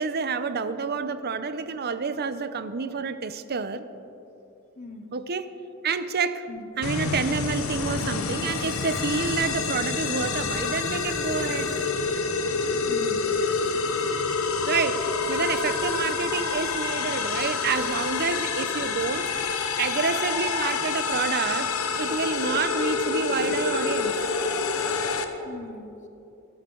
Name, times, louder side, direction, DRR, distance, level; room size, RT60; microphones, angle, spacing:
voice 1, 0.0-3.8 5.1-5.4 5.8-6.4 6.8-11.9 14.6-24.2, right 5 dB, 50° right, 0.7 m, -28 dB
voice 2, 4.8-5.2 6.5-6.7 12.3-13.3 13.9-14.2 25.4-26.1, left 2 dB, 35° left, 0.8 m, -42 dB
sound 1, 6.8-25.2, left 4 dB, 80° left, 1.1 m, -27 dB
24.0 x 13.0 x 3.9 m
head